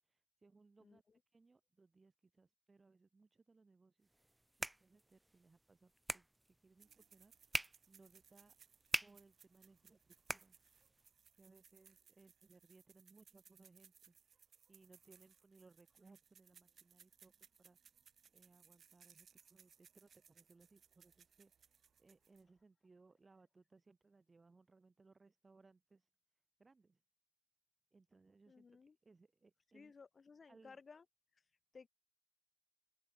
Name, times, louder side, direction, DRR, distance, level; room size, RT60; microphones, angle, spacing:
voice 1, 0.0-4.5 4.8-8.6 9.0-10.6 11.3-17.9 18.3-27.0 27.9-29.9 30.5-30.8, right 3 dB, 35° right, 7.5 m, -68 dB
voice 2, 0.8-1.2 28.5-29.0 29.7-31.0 31.3-31.4 31.7-31.9, left 5 dB, 50° left, 6.8 m, -59 dB
sound 1, 4.1-11.1, right 1 dB, 15° right, 0.5 m, -47 dB
sound 2, 6.8-22.6, right 7 dB, 75° right, 5.2 m, -67 dB
open air
wide cardioid pair, 95°, 0 cm